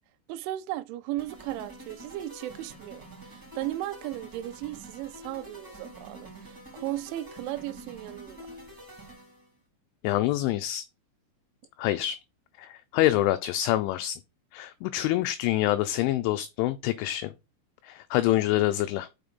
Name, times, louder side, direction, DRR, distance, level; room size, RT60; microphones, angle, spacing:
voice 1, 0.3-8.4, right 15 dB, 85° right, 2.7 m, -36 dB
sound 1, 1.2-9.5, right 1 dB, 5° right, 2.5 m, -47 dB
voice 2, 10.0-10.8 11.8-12.2 12.6-14.2 14.5-17.3 17.8-19.1, left 14 dB, 85° left, 2.8 m, -26 dB
6.4 x 5.7 x 5.2 m
omnidirectional pair, 6.0 m